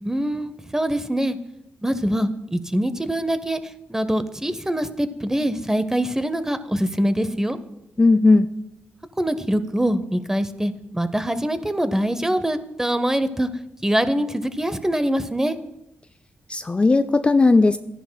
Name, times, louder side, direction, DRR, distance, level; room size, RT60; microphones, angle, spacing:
voice 1, 0.0-1.4 1.8-3.6 3.9-7.6 9.2-13.5 13.8-15.6, right 1 dB, 10° right, 12 dB, 0.8 m, -24 dB
voice 2, 8.0-8.5 16.5-17.8, left 3 dB, 25° left, 10 dB, 0.4 m, -16 dB
13.5 x 10.0 x 2.3 m, 0.88 s
cardioid pair, 65°, 5 cm